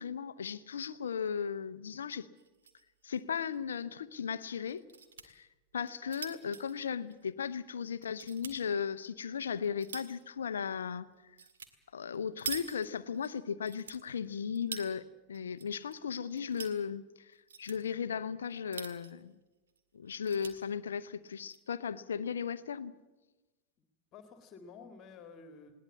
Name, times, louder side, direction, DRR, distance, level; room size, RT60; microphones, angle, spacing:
voice 1, 0.0-2.3 3.0-4.8 5.2-5.5 5.7-11.1 11.9-19.3 19.9-22.9, left 7 dB, 70° left, 15 dB, 0.8 m, -36 dB
sound 1, 2.4-2.8 3.2-3.3 3.5-3.6 4.6-5.3 5.8-7.6 8.0-8.6 9.2-10.2 11.4-11.7 12.0-13.3 13.6-14.9 15.3-15.9 16.2-16.8 17.3-17.8 18.5-19.2 19.7-19.8 20.1-20.5 21.3-21.6, right 6 dB, 65° right, 1.9 m, -45 dB
voice 2, 23.8-25.8, left 5 dB, 35° left, 7 dB, 2.1 m, -52 dB
20.5 x 18.5 x 8.4 m, 1.1 s
figure-of-eight pair, 90°, 0 cm